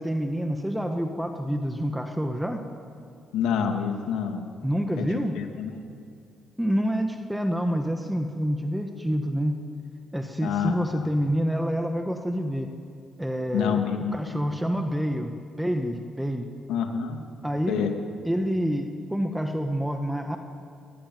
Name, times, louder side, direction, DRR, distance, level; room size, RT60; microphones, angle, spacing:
voice 1, 0.0-2.6 4.6-5.4 6.6-9.6 10.1-12.7 13.2-13.8 14.1-16.5 17.4-17.9 18.2-20.4, equal, 5° right, 5 dB, 1.7 m, -27 dB
voice 2, 3.3-4.4 5.0-5.1 5.3-5.9 10.4-11.1 13.5-14.3 16.7-17.2 17.7-17.9, left 7 dB, 90° left, 5 dB, 2.7 m, -27 dB
22.5 x 19.0 x 9.6 m, 2.5 s
cardioid pair, 90°, 0 cm